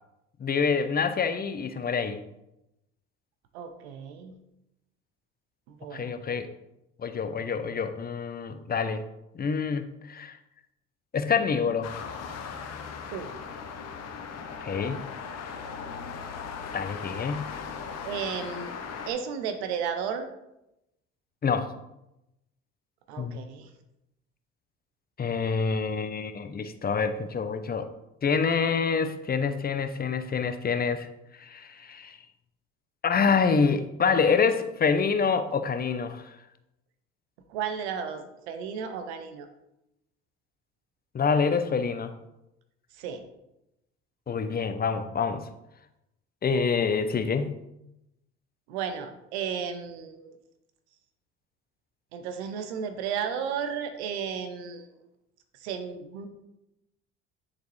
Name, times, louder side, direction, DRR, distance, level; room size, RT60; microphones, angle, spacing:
voice 1, 0.4-2.2 5.9-6.5 7.0-9.0 9.3-10.4 11.1-11.9 14.6-15.0 16.7-17.5 21.4-21.7 23.2-23.4 25.2-27.9 28.2-31.1 31.4-32.2 33.0-36.3 41.1-42.1 44.3-45.5 46.4-47.6, left 5 dB, 30° left, 9 dB, 0.7 m, -26 dB
voice 2, 3.5-4.3 5.7-6.1 13.1-13.3 18.1-18.7 19.1-20.3 23.1-23.7 37.5-39.5 43.0-43.2 48.7-50.3 52.1-54.9 55.6-56.3, right 7 dB, 80° right, 8 dB, 0.8 m, -33 dB
sound 1, 11.8-19.1, left 6 dB, 55° left, 0.9 m, -38 dB
9.6 x 4.0 x 3.2 m, 0.88 s
hypercardioid pair, 65°, 32 cm